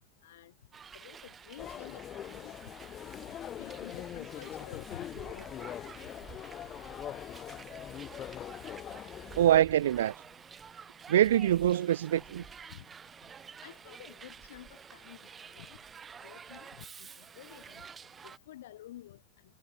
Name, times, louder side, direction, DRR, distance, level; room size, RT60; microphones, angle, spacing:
voice 1, 0.2-0.5 0.9-2.5 3.6-5.8 12.7-12.8 13.6-15.2 15.5-15.8 16.2-16.7 17.0-17.1 17.4-17.8 18.2-19.2, left 13 dB, 80° left, 7.7 m, -50 dB
Hiss, 0.7-18.4, right 6 dB, 25° right, 3.6 m, -50 dB
sound 1, 1.6-9.6, left 10 dB, 35° left, 5.9 m, -42 dB
voice 2, 9.4-10.1 11.1-12.4, right 11 dB, 85° right, 0.3 m, -24 dB
hypercardioid pair, 110°, 0 cm